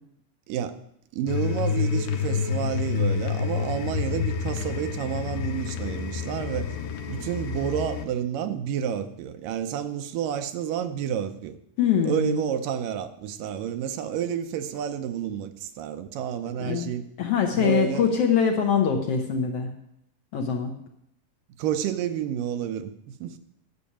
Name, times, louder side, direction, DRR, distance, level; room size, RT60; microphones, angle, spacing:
voice 1, 0.5-0.8 1.1-6.8 7.1-11.6 12.0-17.1 17.6-18.1 21.6-23.4, right 9 dB, 85° right, 2.4 m, -30 dB
sound 1, 1.3-8.1, left 7 dB, 90° left, 2.6 m, -28 dB
voice 2, 11.8-12.4 16.6-16.9 17.2-19.7 20.3-20.7, left 7 dB, 65° left, 1.7 m, -23 dB
10.5 x 6.9 x 8.6 m
omnidirectional pair, 3.8 m